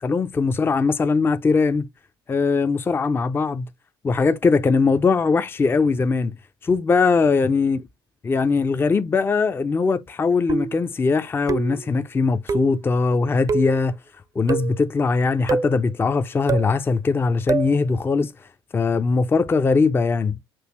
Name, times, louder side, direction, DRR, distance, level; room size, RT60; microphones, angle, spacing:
voice 1, 0.0-1.9 2.3-3.7 4.0-6.3 6.6-7.8 8.3-13.9 14.4-18.3 18.7-20.4, left 4 dB, 20° left, 0.4 m, -20 dB
sound 1, 10.5-10.9 11.5-11.9 12.5-12.8 13.5-13.8 14.5-14.8 15.5-15.8 16.5-16.7 17.5-17.8, right 5 dB, 30° right, 0.5 m, -25 dB
6.0 x 2.7 x 3.0 m
figure-of-eight pair, 60°, 12 cm